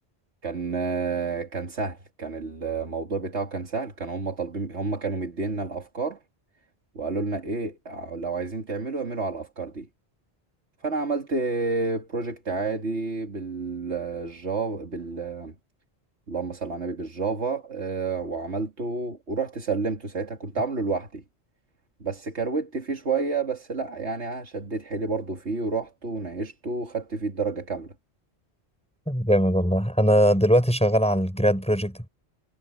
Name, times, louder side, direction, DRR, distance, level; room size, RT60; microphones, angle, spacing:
voice 1, 0.4-6.2 6.9-9.9 10.8-15.5 16.3-21.2 22.0-27.9, right 4 dB, 85° right, 2.6 m, -30 dB
voice 2, 29.1-32.1, equal, 5° left, 5.5 m, -21 dB
omnidirectional pair, 1.1 m